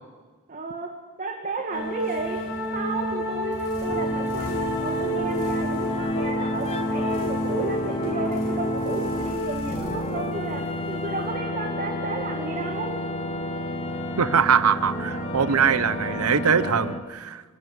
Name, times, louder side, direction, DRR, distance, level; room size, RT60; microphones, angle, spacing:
voice 1, 0.5-2.4 2.7-13.0, right 3 dB, 40° right, 2 dB, 1.8 m, -33 dB
sound 1, 1.6-1.7 3.9-17.0, left 1 dB, 30° left, 1.2 m, -30 dB
sound 2, 1.7-16.8, equal, 60° left, 4.9 m, -32 dB
sound 3, 2.0-11.8, equal, 80° left, 6.1 m, -43 dB
voice 2, 14.2-17.4, right 6 dB, 80° right, 16 dB, 0.8 m, -22 dB
24.5 x 11.5 x 9.6 m, 1.5 s
head